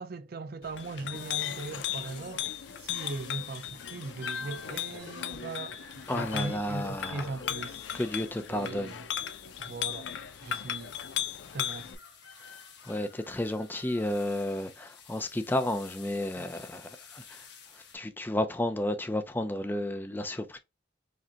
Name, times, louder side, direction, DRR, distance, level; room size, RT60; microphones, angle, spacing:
voice 1, 0.0-2.5 2.8-7.9 8.5-9.0 9.6-10.1 10.4-10.9 11.5-11.9, right 3 dB, 55° right, 0.5 m, -39 dB
Chink clink, 0.6-11.9, left 9 dB, 90° left, 0.4 m, -37 dB
sound 1, 1.1-18.0, left 6 dB, 65° left, 1.2 m, -53 dB
voice 2, 6.1-7.3 7.9-8.9 12.5-12.6 12.8-17.5 17.7-20.6, left 1 dB, 10° left, 0.4 m, -32 dB
4.9 x 2.2 x 2.8 m
head